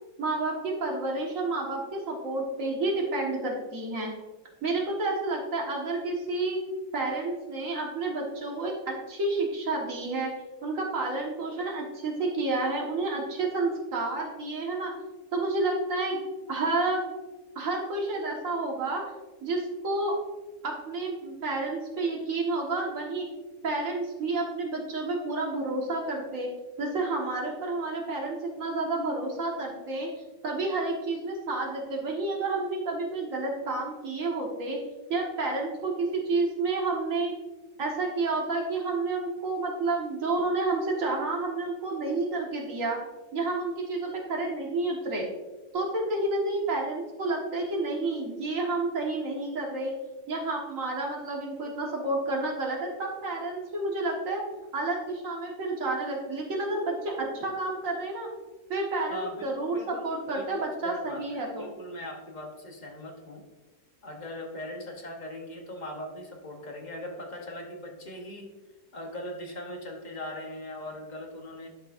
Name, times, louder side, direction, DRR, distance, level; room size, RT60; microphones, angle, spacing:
voice 1, 0.2-4.1 4.6-6.6 6.9-10.3 10.6-14.9 15.3-16.2 16.5-17.0 17.6-19.0 19.4-20.2 20.6-23.3 23.6-26.5 26.8-30.1 30.4-34.8 35.1-37.4 37.8-43.0 43.3-45.3 45.7-49.9 50.3-54.4 54.7-58.3 58.7-61.7, right 2 dB, 55° right, -1 dB, 1.9 m, -30 dB
voice 2, 59.1-63.4 64.0-68.5 68.9-71.7, left 1 dB, 35° left, 2 dB, 0.8 m, -40 dB
11.5 x 5.6 x 2.5 m, 1.2 s
omnidirectional pair, 1.7 m